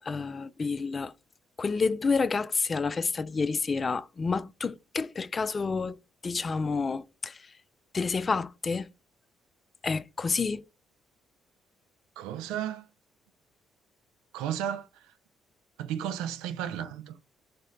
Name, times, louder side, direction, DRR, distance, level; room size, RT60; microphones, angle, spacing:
voice 1, 0.1-1.1 1.6-6.0 6.2-7.4 7.9-8.9 9.8-10.6, left 4 dB, 40° left, 0.3 m, -29 dB
voice 2, 12.2-12.9 14.3-14.9 15.8-17.2, right 10 dB, 80° right, 0.4 m, -33 dB
4.1 x 2.1 x 3.7 m
hypercardioid pair, 50°, 0 cm